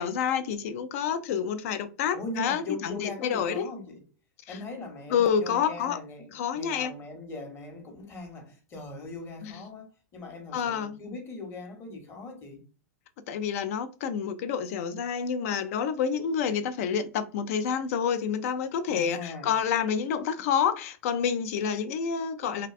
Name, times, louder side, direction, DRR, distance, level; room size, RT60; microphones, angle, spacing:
voice 1, 0.0-3.7 4.5-4.6 5.1-6.0 6.3-6.9 9.4-9.5 10.5-11.0 13.3-22.7, left 7 dB, 60° left, 0.4 m, -28 dB
voice 2, 2.1-4.0 4.5-12.6 18.9-19.5, left 3 dB, 30° left, 0.9 m, -40 dB
2.6 x 2.2 x 2.3 m
hypercardioid pair, 120°, 9 cm